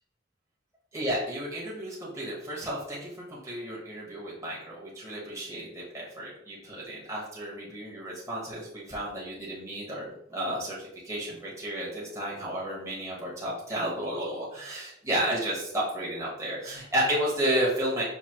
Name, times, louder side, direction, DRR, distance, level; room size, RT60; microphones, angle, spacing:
voice 1, 0.9-18.0, right 1 dB, 15° right, -6 dB, 1.1 m, -32 dB
5.7 x 2.7 x 2.9 m, 0.81 s
head